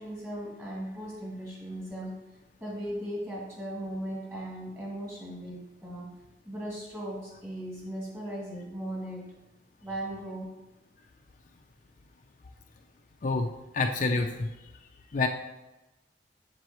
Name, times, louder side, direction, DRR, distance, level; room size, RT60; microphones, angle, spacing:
voice 1, 0.0-2.1 2.6-6.1 6.4-9.2 9.8-10.4, right 1 dB, 15° right, -5 dB, 2.5 m, -37 dB
voice 2, 13.2-14.5 15.1-15.3, left 3 dB, 45° left, 4 dB, 0.5 m, -27 dB
7.7 x 7.4 x 3.1 m, 1.0 s
head